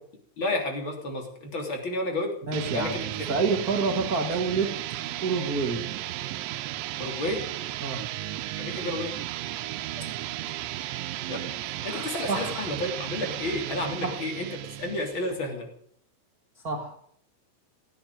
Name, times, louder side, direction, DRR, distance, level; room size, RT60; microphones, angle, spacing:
voice 1, 0.4-2.3 2.7-3.1 7.0-7.4 8.6-9.1 10.5-10.6 11.3-14.5 14.8-15.7, left 2 dB, 30° left, 3 dB, 3.4 m, -31 dB
voice 2, 2.4-3.0 3.3-4.7 5.2-5.8 7.8-8.0 11.9-12.7 14.0-14.2 16.6-16.9, right 4 dB, 55° right, 1 dB, 1.0 m, -28 dB
sound 1, 2.5-15.4, right 14 dB, 90° right, 3.2 m, -34 dB
17.0 x 8.6 x 9.5 m, 0.63 s
omnidirectional pair, 5.2 m